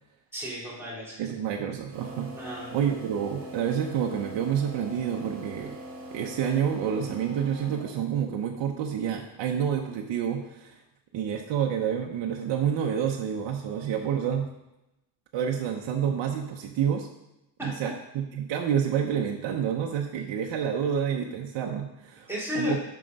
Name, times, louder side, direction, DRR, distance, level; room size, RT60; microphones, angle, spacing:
voice 1, 0.3-1.3 2.4-3.0 17.6-17.7 22.3-22.8, left 1 dB, 5° right, -7 dB, 3.1 m, -33 dB
voice 2, 1.2-2.3 2.7-5.8 6.1-10.8 11.1-14.5 15.3-17.1 17.6-22.3 22.6-22.8, right 8 dB, 90° right, 2 dB, 0.9 m, -28 dB
sound 1, 1.9-8.2, right 1 dB, 30° right, 2.2 m, -42 dB
7.5 x 5.7 x 5.3 m, 0.91 s
cardioid pair, 150°, 43 cm